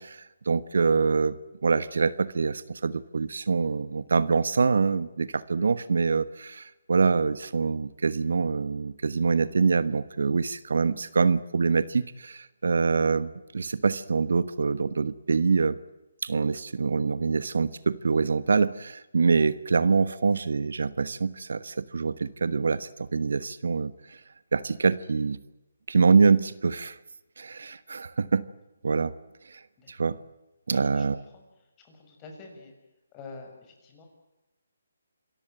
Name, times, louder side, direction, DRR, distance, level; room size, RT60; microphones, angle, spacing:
voice 1, 0.0-1.3 1.6-15.8 16.2-23.9 24.5-25.4 25.9-27.0 27.4-28.4 28.8-29.1 29.5-29.6 29.9-30.2 30.7-31.2, right 4 dB, 70° right, 16 dB, 1.2 m, -25 dB
voice 2, 30.7-31.0 31.3-31.4 31.8-32.7 33.1-34.1, left 3 dB, 20° left, 2 dB, 6.5 m, -46 dB
27.5 x 15.0 x 9.1 m, 0.99 s
hypercardioid pair, 155°, 0 cm